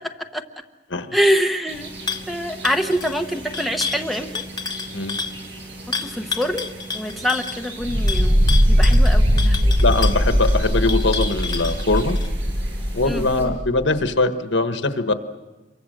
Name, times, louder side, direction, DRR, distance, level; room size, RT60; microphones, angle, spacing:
voice 1, 1.1-1.9 2.3-4.4 6.0-6.7 6.9-9.7 13.1-13.3, equal, ahead, 3 dB, 1.0 m, -24 dB
sound 1, 1.7-13.5, right 2 dB, 85° right, 7.5 m, -38 dB
sound 2, 2.1-2.3 2.6-5.4 5.9-12.3, left 5 dB, 20° left, 1.1 m, -30 dB
sound 3, 7.8-13.9, equal, 30° right, 1.2 m, -19 dB
voice 2, 9.8-12.2 12.9-15.1, left 3 dB, 70° left, 8 dB, 1.4 m, -21 dB
28.0 x 24.0 x 6.6 m, 1.2 s
head